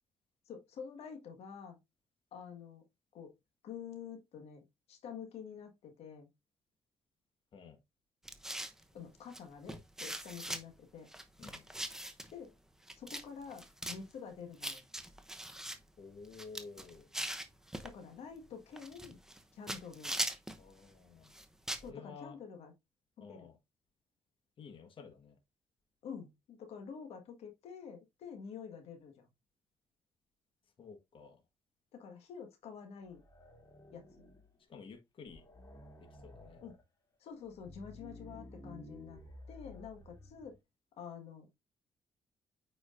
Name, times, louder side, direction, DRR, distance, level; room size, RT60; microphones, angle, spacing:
voice 1, 0.5-1.8 2.3-2.8 3.1-3.3 3.6-6.3 8.9-11.1 12.3-12.5 13.0-14.9 17.8-19.2 19.5-20.1 21.8-22.7 23.2-23.5 26.0-29.3 31.9-33.2 33.9-34.1 36.6-36.8 37.2-39.2 39.5-40.6 41.0-41.6, left 6 dB, 80° left, 1.6 m, -48 dB
sound 1, 8.2-8.8 9.3-9.4 9.7-10.6 11.1-12.3 12.9-13.2 13.5-14.0 14.6-15.8 16.2-17.9 18.8-19.4 19.7-20.6 21.3-21.9, right 1 dB, 5° right, 0.9 m, -40 dB
voice 2, 16.0-17.1 20.6-21.4 21.8-22.3 23.2-23.6 24.6-25.4 30.8-31.4 34.7-35.4 36.0-36.6, left 5 dB, 55° left, 1.5 m, -52 dB
sound 2, 33.1-34.6 34.9-35.0 35.3-36.8 37.4-40.6, left 1 dB, 30° left, 2.8 m, -53 dB
8.6 x 4.9 x 2.6 m
cardioid pair, 80°, 10 cm